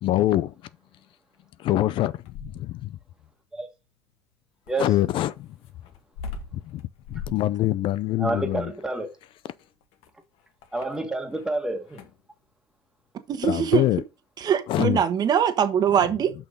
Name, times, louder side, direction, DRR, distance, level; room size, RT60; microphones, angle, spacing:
voice 1, 0.0-0.5 1.6-3.0 4.8-5.5 6.5-6.8 7.1-8.7 13.4-14.0 14.7-15.0, left 14 dB, 55° left, 0.5 m, -24 dB
sound 1, 2.0-2.9 4.7-11.5 11.8-12.3 13.6-13.8, left 4 dB, 70° left, 1.7 m, -42 dB
voice 2, 8.2-9.2 10.7-12.0, right 2 dB, 5° right, 1.8 m, -29 dB
voice 3, 13.3-13.8 14.4-16.3, right 8 dB, 40° right, 1.3 m, -22 dB
6.3 x 5.9 x 5.2 m
cardioid pair, 120°, 11 cm